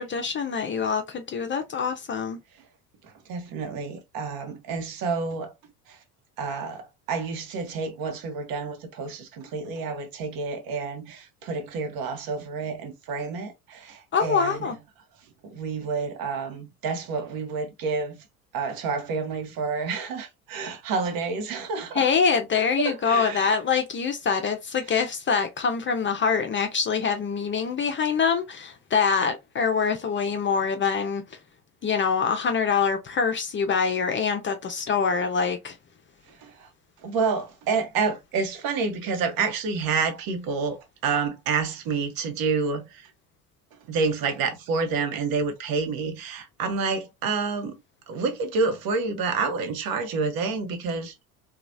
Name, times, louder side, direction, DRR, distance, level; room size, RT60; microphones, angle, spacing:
voice 1, 0.0-2.4 14.1-14.8 22.0-31.2 31.8-35.8, left 6 dB, 25° left, 0.6 m, -25 dB
voice 2, 3.0-5.5 5.9-6.0 6.4-14.7 15.4-18.2 18.5-22.1 22.8-23.5 25.0-25.1 36.4-36.7 37.0-43.1 43.9-47.7 48.1-51.2, right 4 dB, 50° right, 1.0 m, -29 dB
3.0 x 2.4 x 2.5 m
hypercardioid pair, 70°, 45 cm